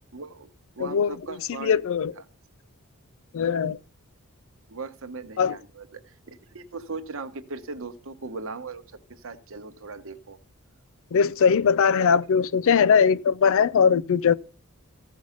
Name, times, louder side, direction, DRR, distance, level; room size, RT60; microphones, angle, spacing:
voice 1, 0.1-0.5 0.8-1.8 4.7-5.9 6.3-8.8 9.1-10.4 12.0-12.1, right 4 dB, 65° right, 1.0 m, -38 dB
voice 2, 0.8-2.1 3.3-3.8 5.4-5.6 11.1-14.3, left 6 dB, 65° left, 0.4 m, -21 dB
15.0 x 5.4 x 5.1 m
head